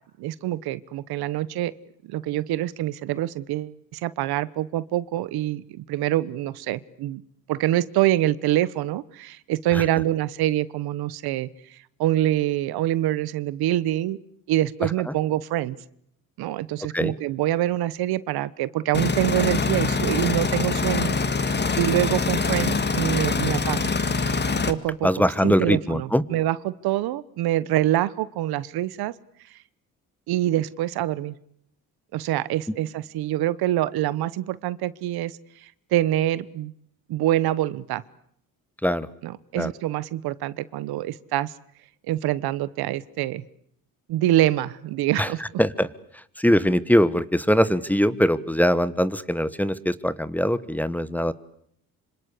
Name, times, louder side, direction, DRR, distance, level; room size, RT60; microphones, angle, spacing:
voice 1, 0.2-1.7 2.0-7.2 7.5-14.2 14.5-15.8 16.4-23.9 24.7-29.1 30.3-31.3 32.1-36.7 37.1-38.0 39.2-41.5 42.1-43.4 44.1-45.4, right 14 dB, 85° right, 18 dB, 1.2 m, -25 dB
sound 1, 18.9-24.7, left 4 dB, 30° left, 2.1 m, -24 dB
voice 2, 25.0-26.2 38.8-39.1 39.6-39.7 45.2-45.3 45.6-45.9 46.4-51.3, equal, 5° left, 16 dB, 1.3 m, -22 dB
26.5 x 26.0 x 8.4 m, 0.69 s
cardioid pair, 95°, 37 cm